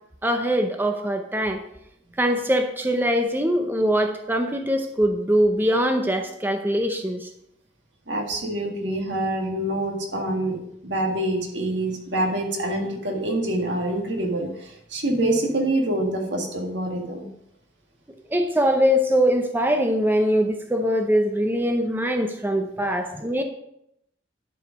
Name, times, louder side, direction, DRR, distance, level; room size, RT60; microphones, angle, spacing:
voice 1, 0.2-1.6 2.2-7.3 18.3-23.4, equal, 10° right, 4 dB, 0.7 m, -22 dB
voice 2, 8.1-10.6 10.8-17.3, right 1 dB, 75° right, 1 dB, 2.0 m, -26 dB
11.0 x 4.9 x 5.2 m, 0.77 s
head